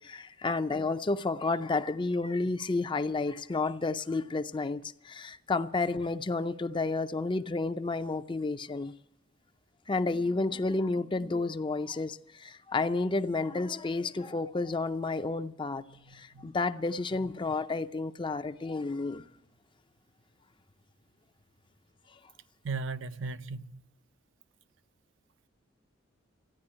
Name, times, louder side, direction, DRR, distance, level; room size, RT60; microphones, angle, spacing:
voice 1, 0.0-8.9 9.9-15.8 16.1-19.3, left 3 dB, 25° left, 0.5 m, -31 dB
voice 2, 15.9-16.5 22.6-23.8, right 4 dB, 75° right, 0.6 m, -37 dB
14.0 x 10.0 x 9.9 m
head